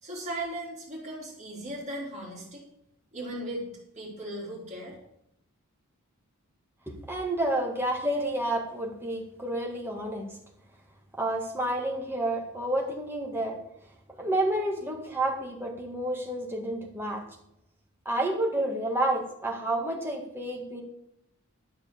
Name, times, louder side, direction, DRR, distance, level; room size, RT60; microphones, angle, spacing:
voice 1, 0.0-2.6 3.1-3.7 4.0-5.0, right 1 dB, 30° right, -4 dB, 3.8 m, -37 dB
voice 2, 6.9-10.3 11.2-13.6 14.2-17.2 18.1-20.8, right 1 dB, 10° right, 0 dB, 1.9 m, -30 dB
12.0 x 6.7 x 7.0 m, 0.76 s
head